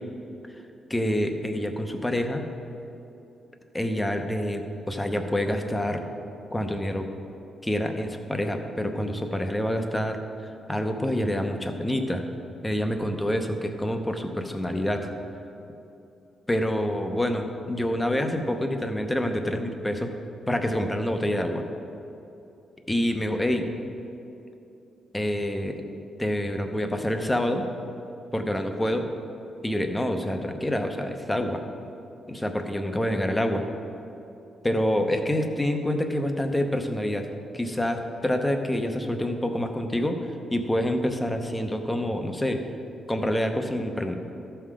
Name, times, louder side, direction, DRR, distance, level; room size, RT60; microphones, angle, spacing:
voice 1, 0.9-2.4 3.7-6.0 6.5-7.1 7.6-10.2 10.7-12.2 12.6-15.1 16.5-20.1 20.5-21.6 22.9-23.7 25.1-25.8 26.2-27.7 28.3-29.1 29.6-31.6 32.3-33.7 34.6-40.2 40.5-42.6 43.1-44.2, left 1 dB, 10° left, 5 dB, 0.8 m, -27 dB
13.0 x 5.7 x 4.9 m, 2.8 s
cardioid pair, 125°, 0 cm